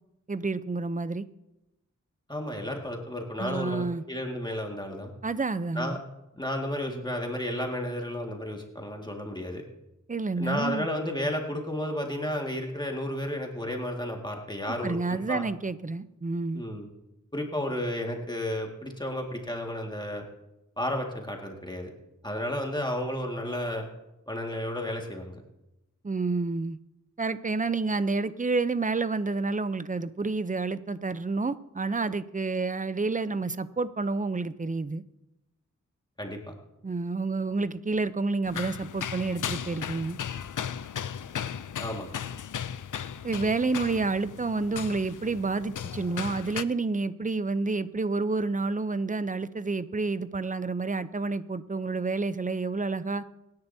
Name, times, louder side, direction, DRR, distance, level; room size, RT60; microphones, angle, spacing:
voice 1, 0.3-1.3 3.4-4.0 5.2-6.0 10.1-10.9 14.8-16.6 26.0-26.8 27.2-35.0 36.8-40.2 43.2-53.2, right 3 dB, 25° right, 14 dB, 0.6 m, -29 dB
voice 2, 2.3-5.1 5.7-6.0 6.4-9.6 10.4-15.5 16.5-16.9 17.3-20.2 20.8-21.9 22.2-23.9 24.3-25.4 36.2-36.5 41.8-42.1, left 1 dB, 15° left, 1 dB, 1.9 m, -32 dB
sound 1, 38.4-46.6, left 8 dB, 75° left, 0.5 m, -36 dB
24.5 x 10.5 x 2.8 m, 0.93 s
wide cardioid pair, 55°, 31 cm